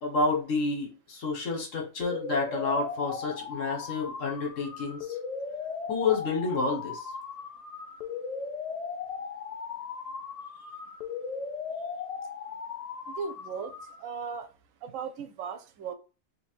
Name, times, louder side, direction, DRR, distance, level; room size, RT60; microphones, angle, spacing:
voice 1, 0.0-5.2 5.9-7.0, left 3 dB, 75° left, 1.5 m, -29 dB
sound 1, 2.0-14.0, left 5 dB, 55° left, 0.4 m, -37 dB
voice 2, 13.1-13.7 14.0-14.5 14.8-15.9, right 6 dB, 85° right, 1.0 m, -37 dB
2.9 x 2.8 x 4.4 m
omnidirectional pair, 1.3 m